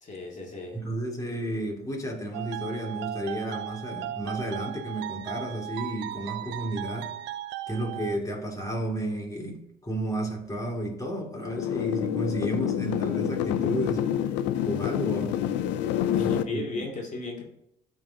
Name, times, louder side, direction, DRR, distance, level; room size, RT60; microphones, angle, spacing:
voice 1, 0.0-0.8 16.2-17.4, left 3 dB, 40° left, 2.3 m, -35 dB
voice 2, 0.7-7.1 7.7-14.2 14.6-15.4 16.1-16.8, right 1 dB, 20° left, 2.7 m, -32 dB
sound 1, 2.3-8.2, right 13 dB, 70° right, 0.4 m, -37 dB
sound 2, 11.4-16.4, left 10 dB, 80° left, 0.5 m, -27 dB
13.0 x 4.6 x 2.8 m
supercardioid pair, 65°, 19 cm